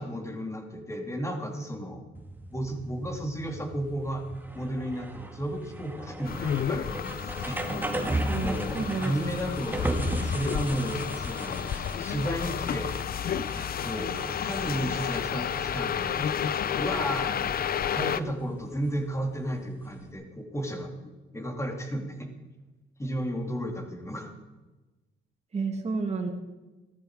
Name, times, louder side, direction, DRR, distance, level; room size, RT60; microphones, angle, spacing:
voice 1, 0.0-2.0 2.5-4.2 4.5-7.6 8.4-9.8 10.2-12.9 13.8-16.2 16.8-17.4 17.9-20.9 21.3-22.3 23.0-24.3, equal, 15° left, 4 dB, 2.6 m, -33 dB
sound 1, 2.1-20.1, right 1 dB, 10° right, 1.7 m, -37 dB
sound 2, 6.3-18.2, left 8 dB, 50° left, 0.6 m, -31 dB
voice 2, 8.3-9.1 25.5-26.3, right 4 dB, 35° right, 2 dB, 1.9 m, -30 dB
15.0 x 13.5 x 4.7 m, 1.1 s
cardioid pair, 90°, 20 cm